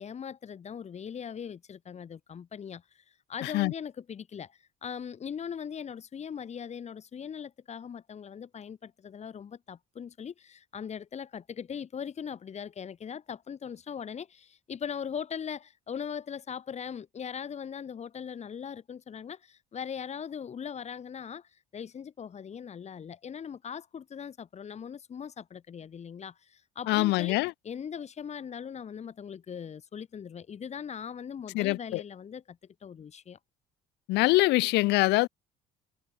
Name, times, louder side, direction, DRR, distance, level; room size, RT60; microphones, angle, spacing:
voice 1, 0.0-27.4 27.6-33.4, left 7 dB, 40° left, 4.1 m, -40 dB
voice 2, 3.4-3.7 26.9-27.5 31.5-32.0 34.1-35.3, left 20 dB, 90° left, 1.7 m, -24 dB
cardioid pair, 110°, 17 cm